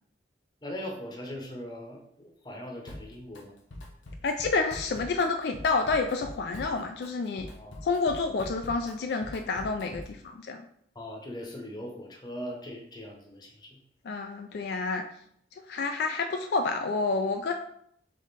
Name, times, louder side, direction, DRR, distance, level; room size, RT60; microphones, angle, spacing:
voice 1, 0.6-3.5 7.5-7.8 10.9-13.8, equal, 20° left, 1 dB, 0.8 m, -40 dB
Drum kit, 2.9-3.4 3.7-10.2, left 1 dB, 85° left, 0.9 m, -44 dB
voice 2, 4.2-7.5 7.8-10.6 14.1-15.0 15.7-17.5, left 4 dB, 60° left, 5 dB, 0.3 m, -29 dB
3.7 x 3.6 x 4.0 m, 0.70 s
head